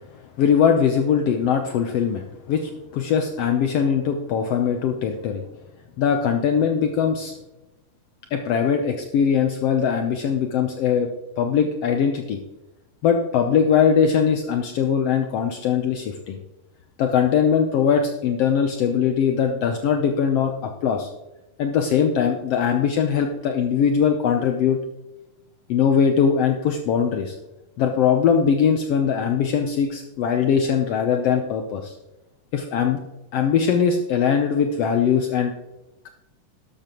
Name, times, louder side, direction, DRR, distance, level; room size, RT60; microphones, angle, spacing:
voice 1, 0.4-5.4 6.0-7.4 8.3-11.1 11.4-12.4 13.0-16.4 17.0-21.1 21.6-24.8 25.7-27.4 27.8-32.0 32.5-33.0 33.3-35.5, left 7 dB, 85° left, 4 dB, 1.3 m, -21 dB
12.0 x 12.0 x 3.0 m, 0.97 s
omnidirectional pair, 3.8 m